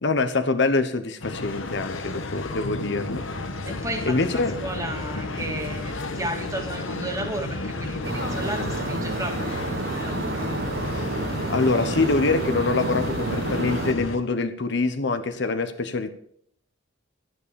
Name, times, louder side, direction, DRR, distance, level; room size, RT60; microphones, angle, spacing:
voice 1, 0.0-3.2 4.1-4.6 11.5-16.1, left 3 dB, 60° left, 8 dB, 0.9 m, -24 dB
sound 1, 1.2-14.2, left 2 dB, 80° left, 1.4 m, -32 dB
voice 2, 3.6-10.5, right 1 dB, 15° right, 3 dB, 2.0 m, -34 dB
sound 2, 8.0-13.9, right 2 dB, 55° right, 1.1 m, -30 dB
11.0 x 9.8 x 6.8 m, 0.68 s
head